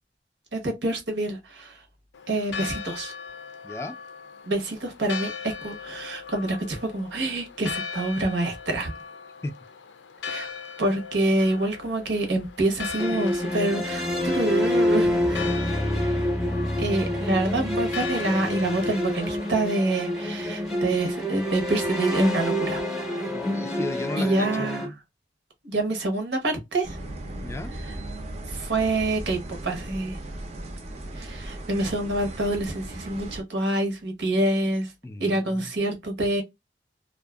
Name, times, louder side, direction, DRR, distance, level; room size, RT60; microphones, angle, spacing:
voice 1, 0.5-1.8 2.3-3.1 4.5-5.3 5.6-8.9 10.3-10.5 10.8-14.1 14.3-15.5 16.0-16.3 16.8-22.8 24.2-24.9 25.6-27.0 27.9-28.0 28.5-30.2 31.1-34.9 35.2-36.4, right 2 dB, 80° right, 1.0 m, -26 dB
Church bell, 2.1-21.6, left 6 dB, 85° left, 0.4 m, -39 dB
voice 2, 3.6-4.0 9.4-9.6 23.3-25.0 27.4-27.7 35.0-35.7, left 2 dB, 15° left, 0.3 m, -36 dB
sound 1, 13.0-24.9, left 1 dB, 5° right, 0.7 m, -27 dB
sound 2, 26.8-33.4, right 1 dB, 40° right, 0.6 m, -37 dB
2.6 x 2.4 x 2.3 m
head